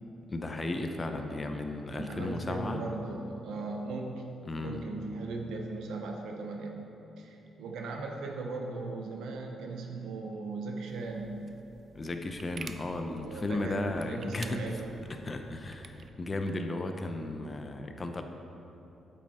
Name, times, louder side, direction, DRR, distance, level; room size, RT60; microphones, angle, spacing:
voice 1, 0.3-2.8 4.5-4.9 11.9-14.7 15.1-18.2, left 2 dB, 30° left, 5 dB, 0.6 m, -35 dB
voice 2, 1.9-4.2 4.6-6.8 7.2-11.6 13.2-14.9, right 3 dB, 85° right, 2 dB, 0.7 m, -38 dB
sound 1, 10.9-16.1, right 5 dB, 50° right, 0.4 m, -50 dB
8.6 x 5.5 x 4.2 m, 2.9 s
cardioid pair, 90°, 0 cm